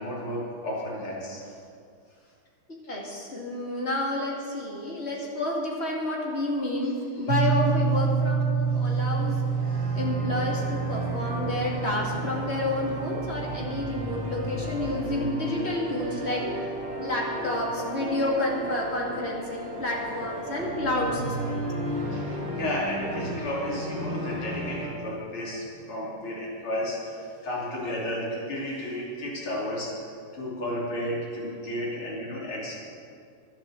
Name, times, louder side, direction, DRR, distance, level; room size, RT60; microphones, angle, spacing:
voice 1, 0.0-1.6 3.7-3.8 6.8-7.3 8.7-9.1 9.6-10.0 16.1-16.3 19.7-19.9 20.4-30.1 30.3-32.7, equal, 75° left, -5 dB, 4.0 m, -33 dB
voice 2, 2.9-9.4 9.9-16.5 17.0-21.7, left 1 dB, 30° left, -2 dB, 2.4 m, -29 dB
sound 1, 7.3-17.2, right 6 dB, 75° right, 1.1 m, -29 dB
sound 2, 9.0-24.9, equal, 40° right, 4.4 m, -35 dB
12.5 x 10.0 x 7.6 m, 2.3 s
omnidirectional pair, 2.4 m